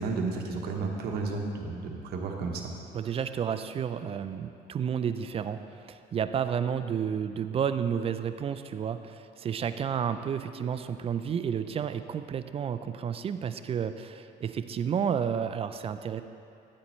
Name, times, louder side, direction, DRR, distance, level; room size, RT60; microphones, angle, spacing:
voice 1, 0.0-2.7, right 4 dB, 70° right, 2 dB, 1.0 m, -32 dB
voice 2, 2.9-5.6 5.9-16.2, right 8 dB, 35° right, 10 dB, 0.3 m, -31 dB
9.7 x 8.4 x 3.1 m, 2.6 s
cardioid pair, 110°, 17 cm